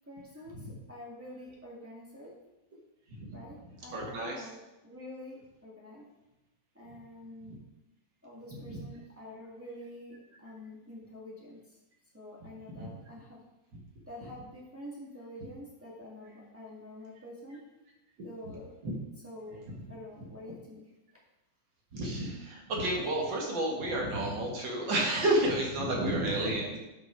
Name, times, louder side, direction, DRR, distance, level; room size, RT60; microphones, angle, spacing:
voice 1, 0.0-2.4 3.3-6.1 6.7-7.6 8.2-11.8 12.1-13.4 14.1-17.6 18.2-18.7 19.2-20.9 26.2-26.5, left 1 dB, 15° right, -6 dB, 0.5 m, -47 dB
voice 2, 3.9-4.5 7.5-7.6 8.7-8.8 18.8-19.0 21.9-26.8, right 1 dB, 50° right, -2 dB, 1.5 m, -30 dB
11.5 x 5.6 x 4.6 m, 0.99 s
omnidirectional pair, 4.3 m